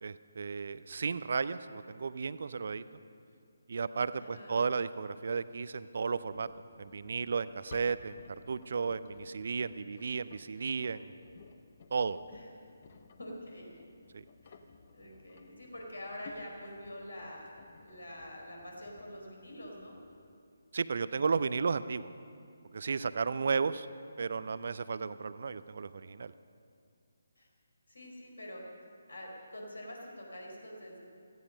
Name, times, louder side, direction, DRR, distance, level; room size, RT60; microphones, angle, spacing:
voice 1, 0.0-2.8 3.7-6.5 6.8-11.2 11.9-12.2 14.1-14.2 20.7-22.1 22.7-23.9 24.2-26.3, right 5 dB, 50° right, 15 dB, 0.6 m, -34 dB
voice 2, 4.1-4.5 12.3-12.4 13.2-13.7 14.4-14.6 14.9-17.5 17.8-20.0 27.4-27.5 27.9-28.6 29.1-31.0, left 1 dB, 75° left, 0 dB, 4.5 m, -46 dB
Engine, 6.2-20.4, left 5 dB, 40° left, 0.9 m, -57 dB
17.5 x 15.0 x 5.4 m, 2.4 s
figure-of-eight pair, 145°, 0 cm